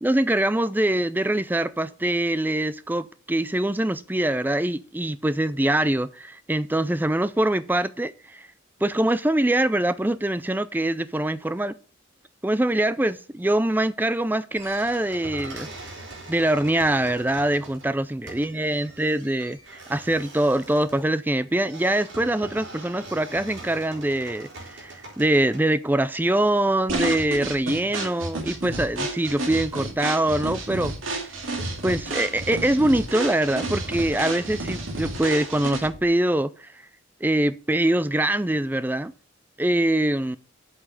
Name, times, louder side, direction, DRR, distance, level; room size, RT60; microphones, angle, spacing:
voice 1, 0.0-8.5 8.8-11.7 12.4-15.7 16.3-31.2 31.8-36.7 37.2-39.1 39.6-40.4, right 1 dB, 10° right, 0.4 m, -24 dB
sound 1, 14.5-25.6, right 2 dB, 60° right, 3.9 m, -42 dB
sound 2, 26.9-36.0, right 2 dB, 75° right, 2.2 m, -31 dB
8.2 x 5.6 x 6.5 m
head